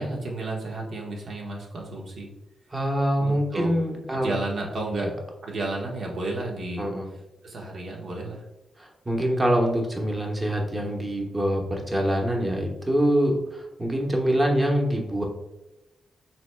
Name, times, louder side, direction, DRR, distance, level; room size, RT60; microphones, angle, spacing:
voice 1, 0.0-2.3 3.2-3.7 4.1-5.1 5.4-6.9 7.4-8.4, right 2 dB, 70° right, -1 dB, 1.1 m, -32 dB
voice 2, 2.7-4.3 4.9-5.1 6.8-7.1 8.8-15.2, equal, 25° right, 1 dB, 1.1 m, -25 dB
5.7 x 3.4 x 2.2 m, 0.96 s
cardioid pair, 65°, 0 cm